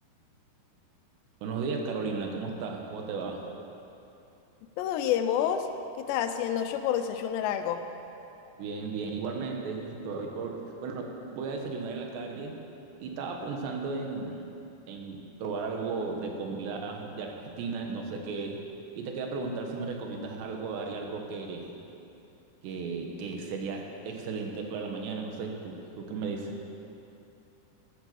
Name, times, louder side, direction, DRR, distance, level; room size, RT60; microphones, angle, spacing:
voice 1, 1.4-3.4 8.6-12.6 13.0-14.5 14.9-18.6 19.0-21.7 22.6-26.6, right 4 dB, 85° right, 2 dB, 3.7 m, -35 dB
voice 2, 4.8-5.7 6.0-7.8, left 9 dB, 90° left, 8 dB, 3.0 m, -28 dB
14.5 x 11.5 x 7.0 m, 2.8 s
omnidirectional pair, 4.8 m